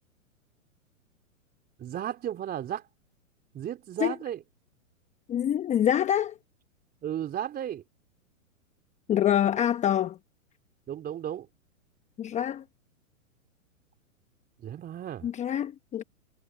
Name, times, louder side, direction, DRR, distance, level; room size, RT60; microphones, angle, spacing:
voice 1, 1.8-2.9 3.5-4.4 7.0-7.8 10.9-11.5 14.6-15.3, right 10 dB, 25° right, 3.8 m, -34 dB
voice 2, 5.3-6.4 9.1-10.2 12.2-12.6 15.2-16.0, left 10 dB, 15° left, 1.0 m, -25 dB
hypercardioid pair, 120°, 40 cm